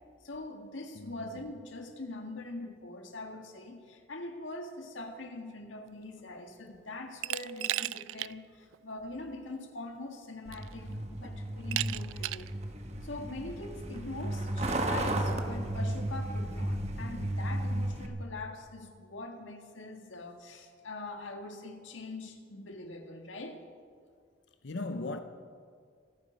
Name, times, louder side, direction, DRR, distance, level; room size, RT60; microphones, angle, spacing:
voice 1, 0.2-12.5 13.0-23.6, left 2 dB, 85° left, 1.8 m, -43 dB
voice 2, 0.9-1.3 24.6-25.2, left 2 dB, 70° left, 0.7 m, -37 dB
Glass, 7.2-8.3 8.7-8.8 10.0-10.1 10.5-10.9 11.7-12.5, right 15 dB, 90° right, 0.3 m, -34 dB
Truck, 10.5-18.1, right 1 dB, 35° right, 1.2 m, -34 dB
25.5 x 9.4 x 5.2 m
head